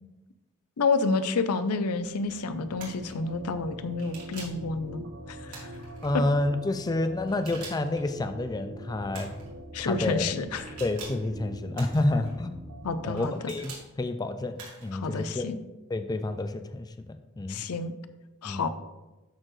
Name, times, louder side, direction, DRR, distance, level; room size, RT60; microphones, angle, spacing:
voice 1, 0.8-5.7 9.7-10.8 12.8-13.5 14.9-15.6 17.5-17.9 18.4-18.7, left 4 dB, 85° left, 12 dB, 0.5 m, -29 dB
sound 1, 1.7-13.2, right 1 dB, 55° right, 0.8 m, -44 dB
sound 2, 2.8-3.1 4.0-4.6 5.5-6.1 7.3-8.0 9.1-9.5 10.6-11.3 11.7-12.3 13.2-13.8 14.6-15.0, right 4 dB, 85° right, 2.5 m, -44 dB
voice 2, 6.0-9.3 9.8-10.3 10.8-12.6 13.0-15.4 15.9-17.6 18.4-18.7, left 2 dB, 15° left, 8 dB, 0.3 m, -29 dB
12.0 x 4.4 x 3.2 m, 1.1 s
head